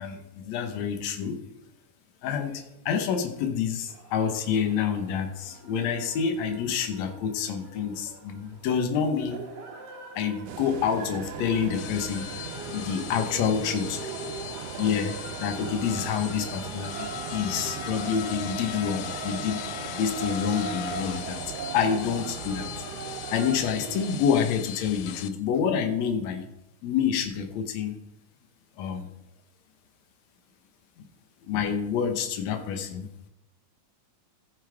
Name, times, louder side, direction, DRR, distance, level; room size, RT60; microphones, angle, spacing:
voice 1, 0.0-1.5 2.2-9.5 10.1-12.3 12.7-14.0 14.8-21.4 21.7-22.7 23.3-26.5 26.8-28.0 28.8-29.1 31.5-33.1, left 7 dB, 70° left, 6 dB, 2.2 m, -28 dB
sound 1, 3.9-23.6, right 4 dB, 60° right, 1.1 m, -42 dB
sound 2, 10.5-24.2, right 9 dB, 75° right, 1.5 m, -40 dB
sound 3, 11.6-25.3, left 11 dB, 90° left, 2.0 m, -39 dB
15.0 x 7.2 x 3.4 m, 0.85 s
omnidirectional pair, 3.4 m